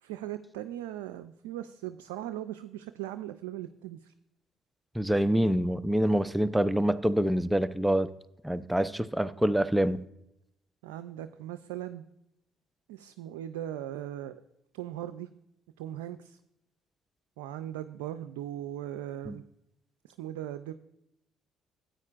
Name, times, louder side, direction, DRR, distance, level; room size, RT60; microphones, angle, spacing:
voice 1, 0.0-4.1 10.8-12.0 12.9-14.4 14.7-15.3 15.8-16.4 17.4-19.4 20.0-20.7, right 12 dB, 85° right, 10 dB, 0.3 m, -39 dB
voice 2, 4.9-8.1 8.4-10.0 19.3-19.4, right 1 dB, 5° right, 14 dB, 0.5 m, -26 dB
14.0 x 9.0 x 2.4 m, 0.80 s
hypercardioid pair, 55°, 0 cm